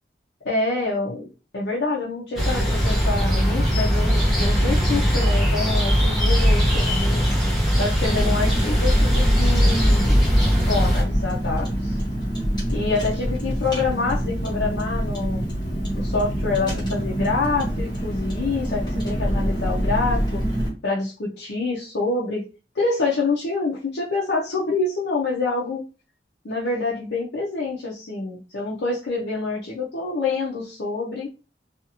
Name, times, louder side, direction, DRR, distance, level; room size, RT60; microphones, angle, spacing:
voice 1, 0.4-7.3 7.8-10.2 10.7-12.0 12.7-15.5 15.9-20.4 20.8-22.4 22.7-25.8 26.4-31.3, left 3 dB, 80° left, -5 dB, 0.6 m, -26 dB
sound 1, 2.4-11.0, equal, ahead, 0.9 m, -20 dB
Car, 8.1-20.7, equal, 25° left, 1.0 m, -26 dB
2.6 x 2.4 x 2.8 m, 0.33 s
head